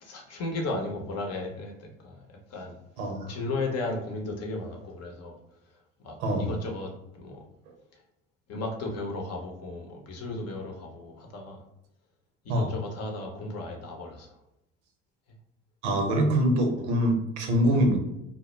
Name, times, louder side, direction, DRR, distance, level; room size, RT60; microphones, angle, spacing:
voice 1, 0.0-2.8 3.3-5.4 6.0-7.4 8.5-11.6 12.4-14.4 16.1-16.2, left 2 dB, 45° left, 2 dB, 0.7 m, -35 dB
voice 2, 3.0-3.3 6.2-6.5 12.5-12.7 15.8-18.0, equal, 80° right, 3 dB, 0.6 m, -24 dB
2.1 x 2.0 x 3.0 m, 0.84 s
hypercardioid pair, 60°, 34 cm